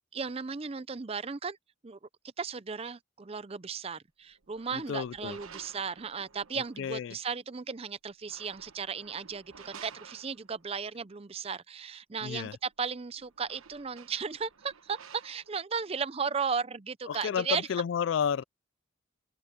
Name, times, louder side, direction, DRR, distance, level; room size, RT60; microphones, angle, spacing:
voice 1, 0.1-1.6 1.8-2.0 2.4-17.7, right 5 dB, 30° right, 0.5 m, -35 dB
sound 1, 4.3-7.0 8.1-10.8 12.7-12.8 13.1-15.6, right 6 dB, 85° right, 1.1 m, -53 dB
voice 2, 4.7-5.4 6.8-7.2 12.2-12.5 17.1-18.4, left 7 dB, 65° left, 0.3 m, -31 dB
head